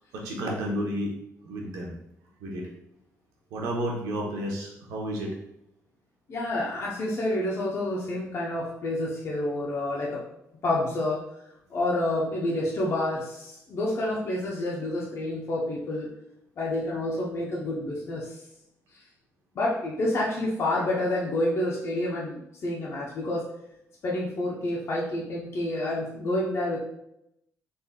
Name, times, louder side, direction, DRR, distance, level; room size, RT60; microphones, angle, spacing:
voice 1, 0.1-1.1 1.4-1.9 2.4-2.7 3.5-5.3, equal, 90° right, -1 dB, 1.0 m, -31 dB
voice 2, 6.3-10.2 10.6-11.2 11.7-16.1 16.6-18.3 19.5-23.4 24.0-26.8, left 1 dB, 50° left, -4 dB, 0.9 m, -28 dB
3.9 x 3.7 x 2.3 m, 0.80 s
cardioid pair, 85°, 6 cm